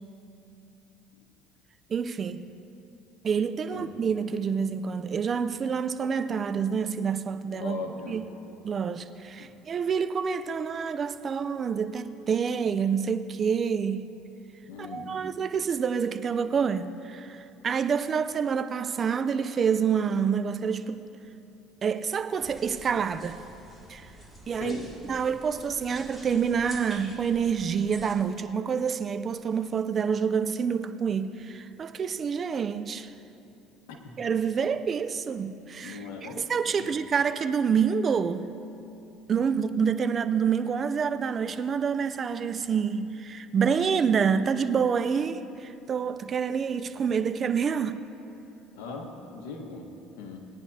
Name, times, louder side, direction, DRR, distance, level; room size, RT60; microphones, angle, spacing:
voice 1, 1.9-2.4 3.2-7.8 8.1-8.2 8.6-14.0 14.8-21.0 21.8-23.4 23.9-24.1 24.5-24.8 25.1-33.1 34.2-38.5 39.3-48.0, right 6 dB, 40° right, 11 dB, 0.5 m, -27 dB
voice 2, 7.6-8.2 9.4-9.5 14.7-15.2 24.6-24.9 33.9-34.2 35.8-36.5 36.8-36.9 39.4-39.5 48.7-50.4, left 4 dB, 90° left, 2 dB, 1.5 m, -39 dB
sound 1, 22.4-28.1, right 1 dB, 10° left, 2.4 m, -48 dB
20.0 x 10.0 x 2.8 m, 2.8 s
supercardioid pair, 95°, 0 cm